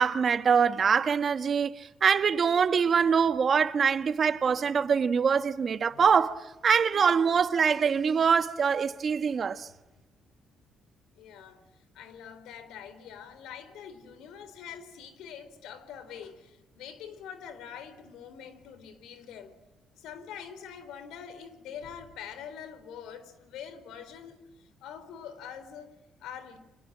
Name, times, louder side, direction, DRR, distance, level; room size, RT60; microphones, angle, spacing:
voice 1, 0.0-1.7 2.0-9.7, right 6 dB, 50° right, 1.5 m, -24 dB
voice 2, 11.2-11.6 11.9-19.6 20.0-26.6, left 8 dB, 90° left, 3.8 m, -44 dB
29.5 x 26.0 x 7.5 m
cardioid pair, 90°, 0 cm